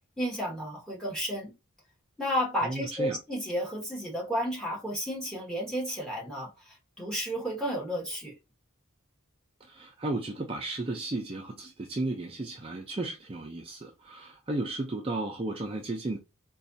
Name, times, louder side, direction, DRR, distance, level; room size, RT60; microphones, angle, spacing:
voice 1, 0.2-1.5 2.2-8.3, equal, 5° left, 1.0 m, -32 dB
voice 2, 2.6-3.2 9.6-16.2, right 2 dB, 25° right, 0.4 m, -34 dB
4.0 x 2.3 x 2.6 m
head